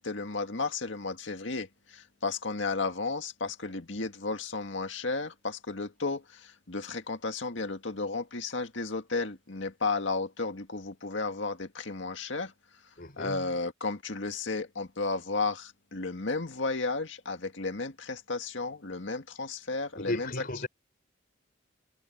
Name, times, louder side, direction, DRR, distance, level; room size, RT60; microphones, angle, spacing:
voice 1, 0.0-12.5 13.2-20.3, left 3 dB, 70° left, 2.0 m, -33 dB
voice 2, 13.0-13.5 19.9-20.7, left 1 dB, 45° left, 6.1 m, -35 dB
head